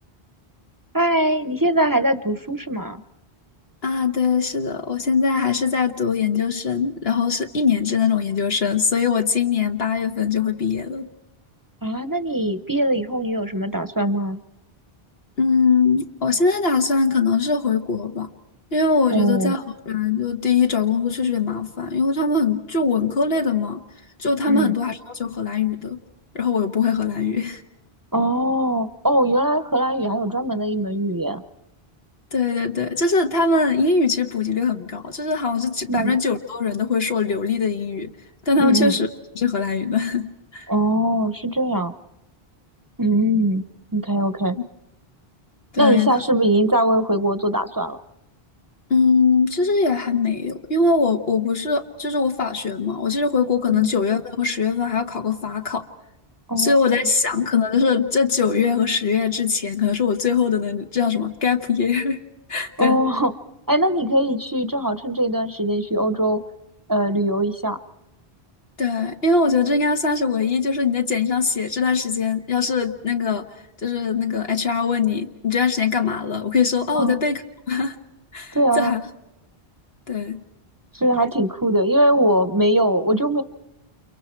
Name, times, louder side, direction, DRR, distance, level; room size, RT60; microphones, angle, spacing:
voice 1, 0.9-3.0 11.8-14.4 19.1-19.5 24.5-24.7 28.1-31.4 35.9-36.2 38.6-39.0 40.7-41.9 43.0-43.6 43.9-44.6 45.8-48.0 53.7-53.9 56.5-56.8 62.8-63.3 63.7-66.4 66.9-67.8 76.9-77.2 78.5-78.9 80.9-83.4, right 1 dB, 20° right, 12 dB, 0.8 m, -21 dB
voice 2, 3.8-11.1 15.4-18.3 18.7-23.8 24.2-26.0 26.3-27.6 32.3-38.1 38.4-39.1 39.3-40.7 44.5-44.6 45.7-46.2 48.9-55.9 56.6-62.2 62.5-63.0 68.8-73.5 73.8-78.0 78.3-79.0 80.1-80.4, left 5 dB, 75° left, 4 dB, 1.5 m, -21 dB
30.0 x 29.5 x 4.5 m, 0.93 s
omnidirectional pair, 1.0 m